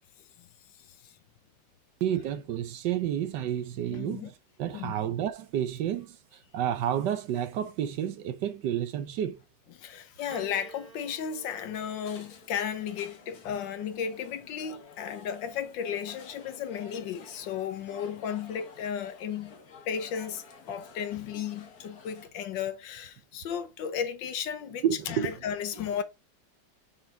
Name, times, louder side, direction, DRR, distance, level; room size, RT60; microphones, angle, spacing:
voice 1, 2.0-4.3 4.6-6.2 6.5-9.4 24.8-25.3, right 10 dB, 75° right, 1.3 m, -30 dB
voice 2, 3.9-4.3 4.7-5.0 9.8-19.6 19.9-26.0, left 8 dB, 85° left, 1.6 m, -34 dB
Piano, 10.3-14.8 15.8-16.6, right 5 dB, 50° right, 1.3 m, -53 dB
sound 1, 11.7-22.3, left 4 dB, 55° left, 1.5 m, -51 dB
5.9 x 3.9 x 4.6 m
omnidirectional pair, 2.0 m